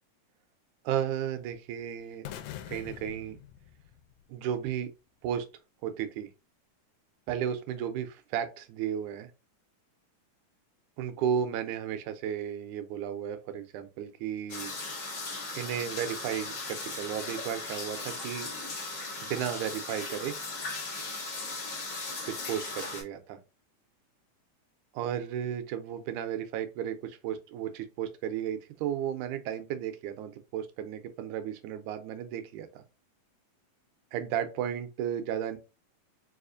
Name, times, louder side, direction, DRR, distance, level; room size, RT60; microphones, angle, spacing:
voice 1, 0.9-2.4 2.7-3.4 4.3-4.9 5.2-5.5 5.8-6.3 7.3-9.3 11.0-14.7 15.5-18.5 19.2-20.4 22.5-23.4 24.9-32.8 34.1-35.6, right 9 dB, 85° right, 2.0 m, -34 dB
sound 1, 2.2-4.3, left 11 dB, 85° left, 2.0 m, -44 dB
sound 2, 14.5-23.0, left 3 dB, 50° left, 1.5 m, -37 dB
4.9 x 2.4 x 2.5 m
omnidirectional pair, 3.4 m